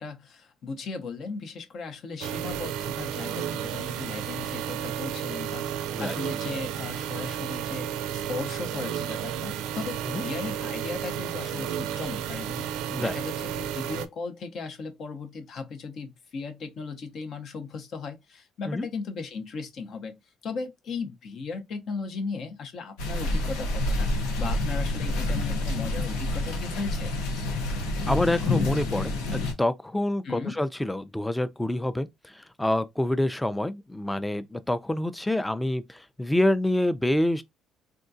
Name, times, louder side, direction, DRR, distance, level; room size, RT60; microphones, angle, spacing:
voice 1, 0.0-27.1 30.2-30.5, left 4 dB, 55° left, 0.8 m, -37 dB
sound 1, 2.2-14.1, right 10 dB, 85° right, 0.3 m, -32 dB
sound 2, 23.0-29.5, left 2 dB, 90° left, 0.8 m, -28 dB
voice 2, 28.1-37.4, left 1 dB, 10° left, 0.4 m, -27 dB
3.6 x 2.2 x 2.6 m
supercardioid pair, 85°, 0 cm